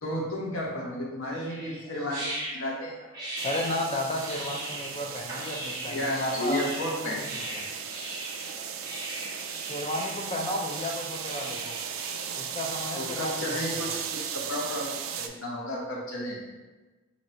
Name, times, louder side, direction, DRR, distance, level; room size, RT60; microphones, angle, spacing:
voice 1, 0.0-2.9 5.9-7.2 13.0-16.4, left 1 dB, 70° left, -2 dB, 0.9 m, -32 dB
sound 1, 1.3-12.3, right 1 dB, 20° right, 0.9 m, -39 dB
voice 2, 3.4-7.7 9.6-11.8 12.3-13.8, left 1 dB, 25° left, 1 dB, 0.4 m, -33 dB
sound 2, 3.4-15.3, right 7 dB, 65° right, 0.3 m, -37 dB
2.9 x 2.6 x 4.2 m, 1.2 s
head